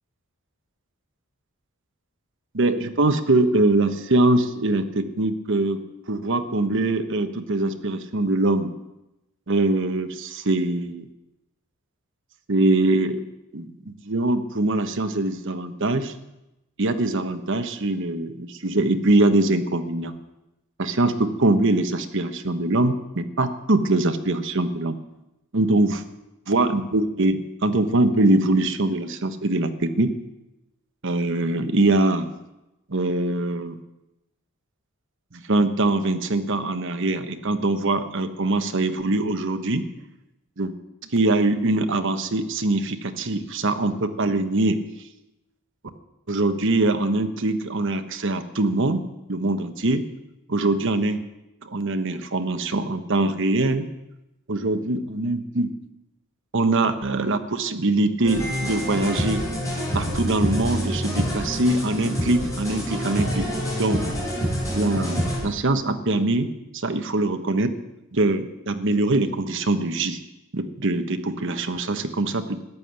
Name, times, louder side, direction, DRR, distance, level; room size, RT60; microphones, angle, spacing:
voice 1, 2.5-5.8 6.1-8.7 9.5-11.1 12.5-13.2 13.5-16.1 16.8-20.1 20.8-25.0 25.5-26.0 26.5-30.1 31.0-32.3 32.9-33.8 35.3-39.9 40.6-40.7 41.1-44.8 46.3-49.0 49.3-50.0 50.5-51.2 51.6-53.8 54.5-55.7 56.5-59.4 59.9-63.5 63.8-64.0 64.7-67.7 68.1-70.2 70.5-72.6, right 2 dB, 60° right, 8 dB, 1.2 m, -23 dB
sound 1, 58.2-65.4, equal, 15° left, 6.4 m, -27 dB
14.0 x 9.6 x 8.9 m, 0.95 s
head